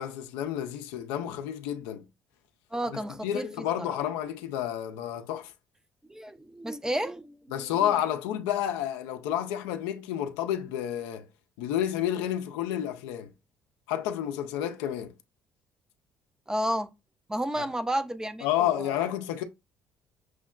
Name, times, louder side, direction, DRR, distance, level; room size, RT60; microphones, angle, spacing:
voice 1, 0.0-2.0 3.2-5.5 7.5-11.3 11.6-13.3 13.9-15.1 17.6-17.7 18.4-19.4, left 11 dB, 80° left, 0.4 m, -30 dB
voice 2, 2.7-4.0 6.1-7.9 16.5-16.9 17.3-19.1, right 1 dB, 10° right, 0.5 m, -32 dB
6.1 x 2.1 x 2.3 m
hypercardioid pair, 60°, 6 cm